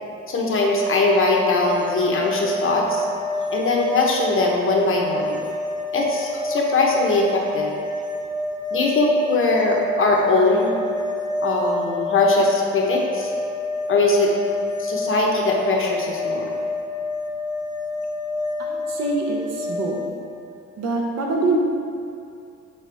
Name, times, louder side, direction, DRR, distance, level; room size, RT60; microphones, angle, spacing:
voice 1, 0.3-3.0 3.5-5.4 5.9-7.7 8.7-10.7 11.4-13.3 13.9-14.3 14.8-16.5, left 2 dB, 45° left, -1 dB, 1.0 m, -21 dB
sound 1, 0.9-20.1, left 2 dB, 15° right, 0.6 m, -28 dB
voice 2, 18.6-20.0 20.8-21.6, right 3 dB, 60° right, -1 dB, 1.0 m, -24 dB
6.8 x 4.1 x 3.4 m, 2.5 s
cardioid pair, 90°, 30 cm